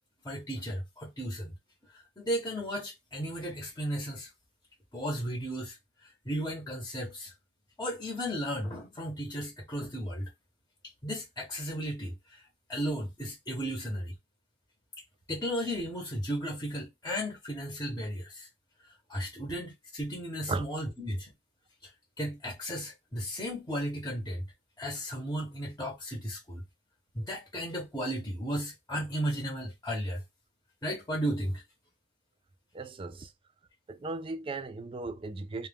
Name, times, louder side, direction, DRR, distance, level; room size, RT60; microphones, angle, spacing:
voice 1, 0.2-1.5 1.9-4.3 4.9-5.8 6.2-7.3 7.8-10.3 11.0-12.4 12.7-14.1 15.3-18.5 19.1-21.3 21.8-21.9 22.2-24.5 24.8-26.6 27.1-30.2 30.8-31.6, equal, 20° left, 0.8 m, -35 dB
voice 2, 32.7-33.3 33.9-35.7, right 3 dB, 30° right, 0.3 m, -36 dB
2.3 x 2.2 x 3.3 m
head